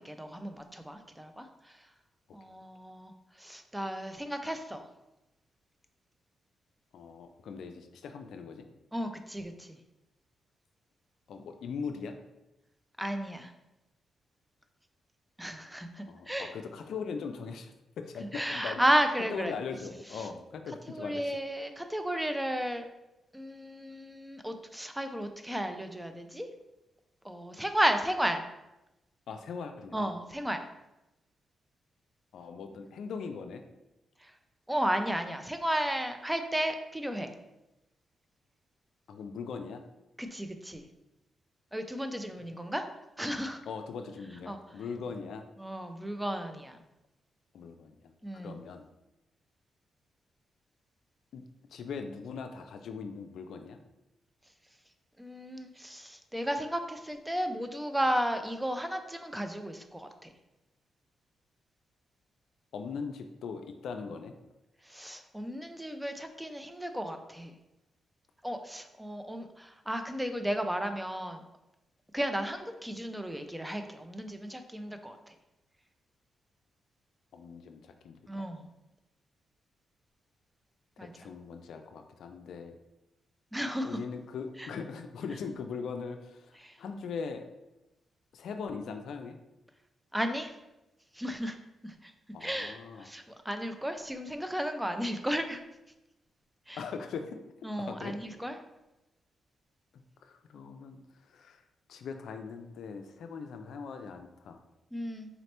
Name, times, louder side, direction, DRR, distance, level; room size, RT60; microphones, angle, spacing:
voice 1, 0.0-1.8 2.3-3.1 3.4-4.9 8.9-9.8 13.0-13.5 15.4-16.5 18.3-19.5 20.2-20.3 20.9-22.8 23.3-26.5 27.2-28.4 29.9-30.7 34.2-34.3 34.7-37.3 40.2-40.8 41.7-42.9 43.2-43.6 44.5-44.6 45.6-46.8 48.2-48.6 55.2-60.3 64.8-67.5 68.4-71.4 72.1-75.3 78.3-78.7 81.0-81.1 83.5-84.0 84.6-84.7 86.6-86.8 90.1-90.5 91.1-91.6 91.8-92.1 92.4-95.6 96.7-96.8 97.6-98.6 104.9-105.3, equal, 10° right, 7 dB, 0.4 m, -33 dB
voice 2, 6.9-8.7 11.3-12.2 16.0-18.8 19.3-21.4 29.3-30.1 32.3-33.6 39.1-39.8 43.7-45.4 47.5-48.1 48.4-48.9 51.3-51.4 51.7-53.8 62.7-64.3 77.3-78.5 81.0-82.8 83.8-87.5 88.3-89.4 92.3-93.1 96.8-97.4 97.8-98.2 100.2-101.0 101.3-101.6 101.9-104.6, left 5 dB, 80° left, 6 dB, 0.3 m, -40 dB
4.1 x 2.9 x 3.2 m, 0.95 s
cardioid pair, 70°, 0 cm